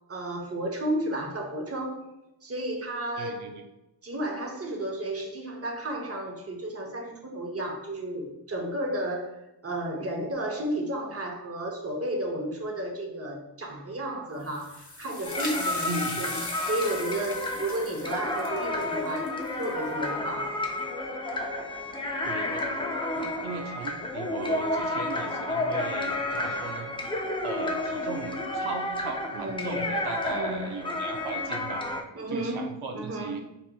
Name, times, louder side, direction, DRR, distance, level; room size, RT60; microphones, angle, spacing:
voice 1, 0.1-2.0 2.4-3.6 4.0-9.4 9.6-20.6 29.4-29.9 30.3-30.7 32.1-32.7 32.9-33.4, right 1 dB, 30° right, 1 dB, 0.8 m, -32 dB
voice 2, 3.2-3.6 15.8-16.2 22.2-22.6 23.1-26.9 27.4-31.9 32.3-33.4, right 4 dB, 85° right, 4 dB, 0.5 m, -37 dB
sound 1, 14.4-19.9, left 2 dB, 40° left, 0.9 m, -39 dB
sound 2, 15.2-32.0, left 2 dB, 10° left, 0.4 m, -31 dB
4.6 x 2.8 x 2.2 m, 0.94 s
wide cardioid pair, 85°, 48 cm